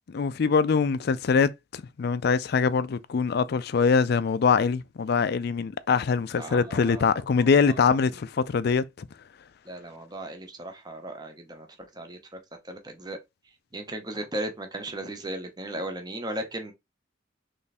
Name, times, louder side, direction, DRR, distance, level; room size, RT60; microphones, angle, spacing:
voice 1, 0.1-9.1, left 5 dB, 55° left, 0.4 m, -23 dB
voice 2, 6.3-7.8 9.6-11.7 11.9-12.4 12.6-13.2 13.7-16.7, right 1 dB, 20° right, 0.8 m, -36 dB
3.4 x 3.2 x 4.2 m
head